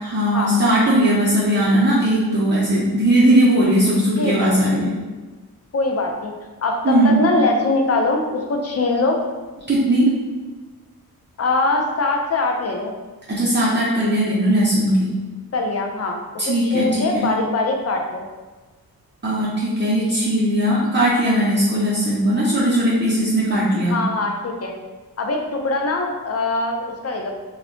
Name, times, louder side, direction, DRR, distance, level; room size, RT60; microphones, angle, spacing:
voice 1, 0.0-4.9 6.8-7.2 9.7-10.1 13.3-15.1 16.4-17.3 19.2-24.0, right 1 dB, 30° right, -9 dB, 0.7 m, -18 dB
voice 2, 4.2-4.5 5.7-6.3 6.6-9.2 11.4-12.9 15.5-16.2 16.5-18.2 23.9-24.7 25.2-27.3, left 2 dB, 40° left, 2 dB, 0.5 m, -22 dB
2.3 x 2.2 x 3.6 m, 1.3 s
cardioid pair, 65°, 37 cm